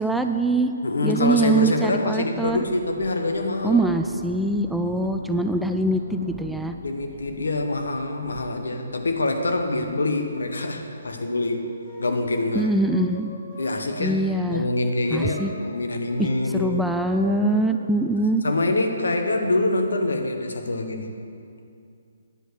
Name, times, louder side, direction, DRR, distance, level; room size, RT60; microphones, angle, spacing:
voice 1, 0.0-0.7 1.0-2.6 3.6-6.7 12.5-13.3 14.0-14.6 15.1-15.5 16.2-16.3 16.5-18.4, right 2 dB, ahead, 6 dB, 0.3 m, -23 dB
voice 2, 0.8-3.9 4.8-5.1 6.8-11.7 12.0-12.7 13.6-16.9 18.4-21.1, left 2 dB, 70° left, 5 dB, 1.2 m, -25 dB
sound 1, 2.3-9.9, right 2 dB, 40° right, 1.5 m, -43 dB
sound 2, 10.5-14.1 15.0-15.5 16.0-18.5, left 1 dB, 35° left, 2.0 m, -42 dB
10.5 x 8.0 x 6.4 m, 2.4 s
figure-of-eight pair, 135°, 0 cm